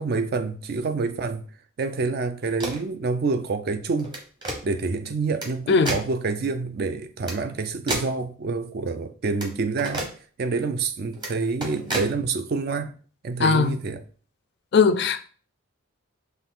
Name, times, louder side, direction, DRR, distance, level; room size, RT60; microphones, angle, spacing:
voice 1, 0.0-1.4 1.8-4.2 4.6-12.9 13.2-14.0, right 4 dB, 50° right, 0.4 m, -27 dB
sound 1, 2.4-2.9 4.0-4.6 5.4-5.5 5.9-6.1 7.2-7.4 7.9-8.1 9.4-9.5 9.8-10.1 11.1-11.3 11.6-12.1, right 1 dB, 20° right, 0.9 m, -30 dB
voice 2, 13.4-13.8 14.7-15.2, left 5 dB, 55° left, 0.4 m, -19 dB
5.7 x 2.3 x 3.7 m
head